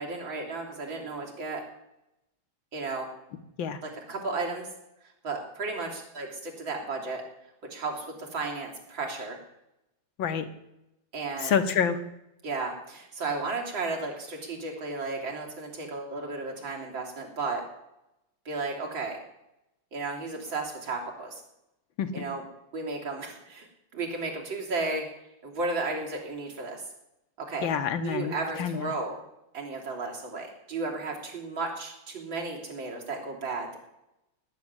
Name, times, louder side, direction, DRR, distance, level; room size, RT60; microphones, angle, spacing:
voice 1, 0.0-1.7 2.7-3.1 3.8-4.7 5.2-7.2 7.7-9.4 11.1-11.6 12.4-17.6 18.5-19.2 19.9-21.4 22.1-22.4 22.7-23.7 23.9-25.0 25.4-26.8 27.4-27.7 28.0-29.2 29.5-33.8, right 3 dB, 80° right, -1 dB, 4.0 m, -34 dB
voice 2, 10.2-10.5 11.4-12.0 22.0-22.3 27.6-28.9, left 7 dB, 80° left, 10 dB, 2.0 m, -28 dB
18.0 x 7.4 x 9.7 m, 0.87 s
omnidirectional pair, 2.1 m